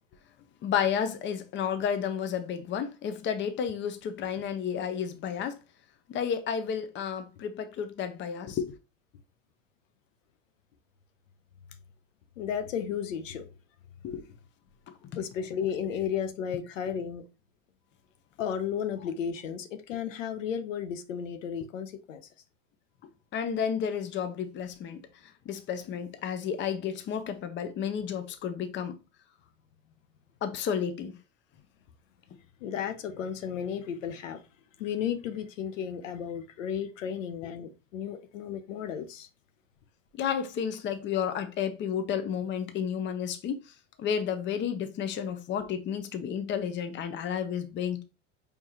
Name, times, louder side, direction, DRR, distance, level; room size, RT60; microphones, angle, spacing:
voice 1, 0.6-5.6 6.1-8.7 14.0-14.2 23.3-25.0 25.5-29.0 30.4-31.2 40.2-43.6 44.0-48.0, left 8 dB, 30° left, 0.7 m, -31 dB
voice 2, 12.4-13.5 15.2-17.2 18.4-22.2 32.6-34.4 34.8-39.3, left 8 dB, 75° left, 0.8 m, -33 dB
4.8 x 3.5 x 2.9 m
hypercardioid pair, 90°, 39 cm